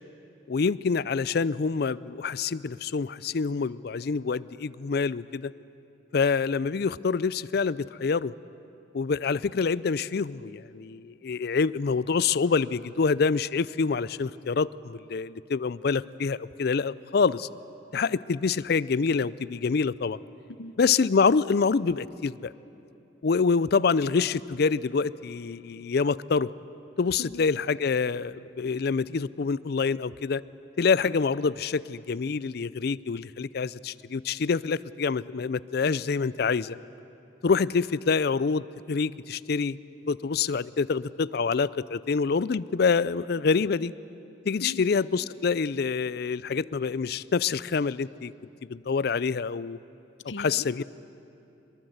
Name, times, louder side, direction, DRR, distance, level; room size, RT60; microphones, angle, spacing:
voice 1, 0.5-5.5 6.1-8.3 8.9-17.5 17.9-20.2 20.8-22.5 23.2-26.5 27.0-30.4 30.8-36.8 37.4-39.8 40.1-43.9 44.5-48.3 48.7-49.8 50.4-50.8, left 5 dB, 60° left, 18 dB, 0.4 m, -26 dB
voice 2, 50.2-50.8, left 2 dB, 90° left, 13 dB, 0.9 m, -40 dB
23.0 x 22.5 x 8.0 m, 2.8 s
head